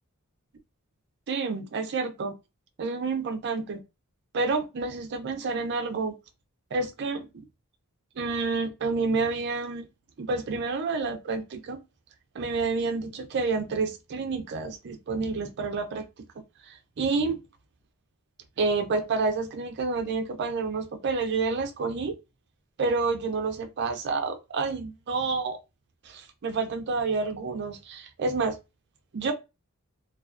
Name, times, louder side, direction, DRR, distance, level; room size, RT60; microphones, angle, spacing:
voice 1, 1.3-2.3 2.8-3.8 4.3-6.1 6.7-7.3 8.2-9.9 10.2-11.8 12.3-16.1 16.7-17.4 18.6-22.2 22.8-25.6 26.0-28.6 29.1-29.3, right 4 dB, 55° right, 0.5 m, -29 dB
2.3 x 2.3 x 2.3 m
head